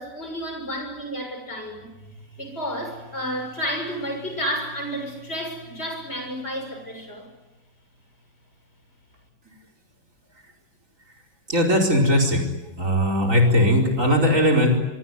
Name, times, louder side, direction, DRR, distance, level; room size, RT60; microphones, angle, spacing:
voice 1, 0.0-1.9 2.3-7.3, equal, 35° left, 4 dB, 7.2 m, -31 dB
voice 2, 11.5-12.5 12.8-14.8, equal, 45° right, 6 dB, 5.1 m, -19 dB
25.0 x 23.0 x 9.8 m, 1.0 s
omnidirectional pair, 1.9 m